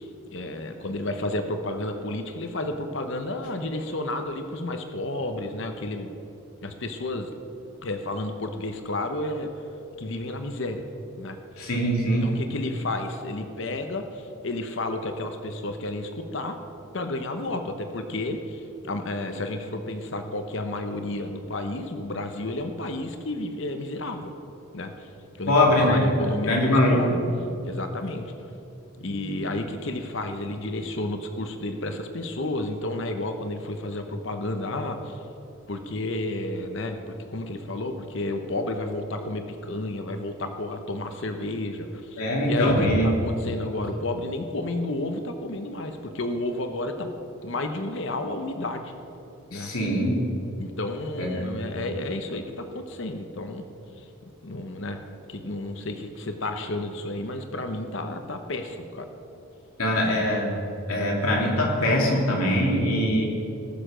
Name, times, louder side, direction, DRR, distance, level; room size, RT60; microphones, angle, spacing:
voice 1, 0.0-6.1 6.6-7.3 7.8-9.5 10.0-10.8 11.2-11.4 12.0-16.6 16.9-24.3 24.7-25.1 25.4-27.2 27.6-28.3 29.0-35.2 35.7-47.1 47.4-48.9 49.5-49.7 50.6-53.6 54.0-54.1 54.4-55.0 55.3-59.1, left 2 dB, 60° left, 6 dB, 0.9 m, -31 dB
voice 2, 11.6-12.3 25.5-26.1 26.5-27.1 29.0-29.4 42.2-43.1 49.5-50.2 51.2-51.5 59.8-60.5 60.9-63.3, left 1 dB, 85° left, -2 dB, 2.6 m, -22 dB
19.5 x 6.9 x 5.1 m, 2.8 s
head